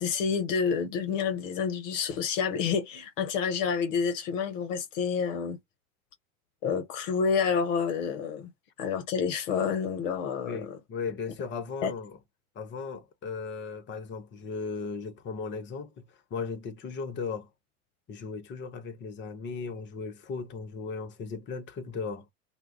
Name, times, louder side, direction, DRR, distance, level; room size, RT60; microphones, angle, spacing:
voice 1, 0.0-5.6 6.6-8.5 8.8-10.8 11.8-11.9, left 6 dB, 55° left, 0.8 m, -29 dB
voice 2, 10.4-12.2 12.6-16.0 16.3-17.5 18.1-22.2, left 5 dB, 25° left, 0.7 m, -36 dB
2.3 x 2.1 x 3.6 m
figure-of-eight pair, 80°, 45 cm